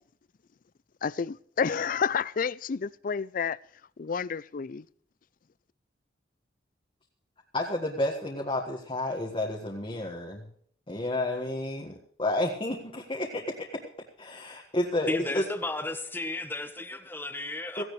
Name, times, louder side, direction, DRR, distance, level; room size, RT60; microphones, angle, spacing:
voice 1, 1.0-3.6 4.0-4.8, left 6 dB, 50° left, 0.4 m, -30 dB
voice 2, 7.5-10.4 10.9-13.8 14.2-15.4 17.8-17.9, left 1 dB, 30° left, 1.6 m, -31 dB
voice 3, 15.1-17.8, left 2 dB, 10° left, 1.3 m, -34 dB
17.5 x 15.5 x 3.2 m
head